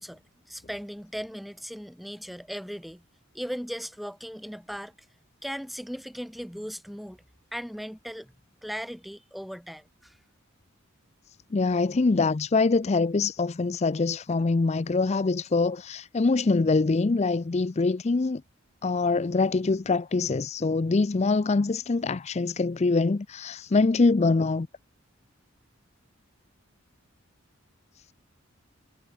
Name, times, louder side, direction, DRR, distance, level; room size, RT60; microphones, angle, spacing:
voice 1, 0.5-3.0 3.3-4.9 5.4-7.2 7.5-8.3 8.6-10.2, equal, ahead, 1.2 m, -37 dB
voice 2, 11.5-18.4 18.8-24.7, left 3 dB, 30° left, 0.4 m, -24 dB
head